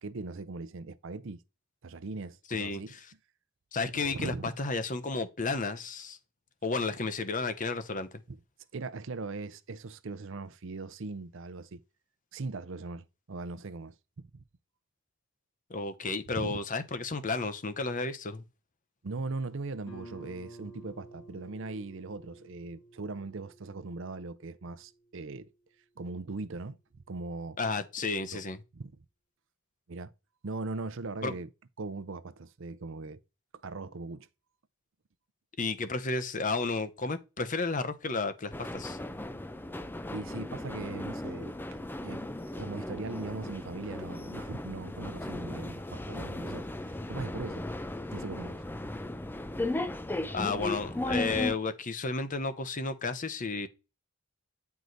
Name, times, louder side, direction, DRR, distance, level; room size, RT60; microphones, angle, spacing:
voice 1, 0.0-1.4 1.8-3.0 3.9-4.5 8.3-8.4 8.7-11.8 12.3-14.0 16.4-16.6 19.0-25.5 26.0-27.6 28.0-28.4 28.7-28.9 29.9-30.1 30.4-31.5 31.8-33.2 33.6-34.3 40.1-46.7 47.1-47.7 48.1-48.6, right 3 dB, 60° right, 0.6 m, -39 dB
voice 2, 2.5-2.8 3.7-6.2 6.6-8.1 15.7-18.4 27.6-28.6 31.2-31.3 35.6-39.0 50.3-53.7, left 3 dB, 40° left, 0.8 m, -32 dB
Guitar, 19.9-25.3, right 1 dB, 85° left, 1.9 m, -52 dB
sound 1, 38.5-51.6, left 1 dB, 10° left, 0.4 m, -36 dB
9.3 x 4.7 x 3.9 m
head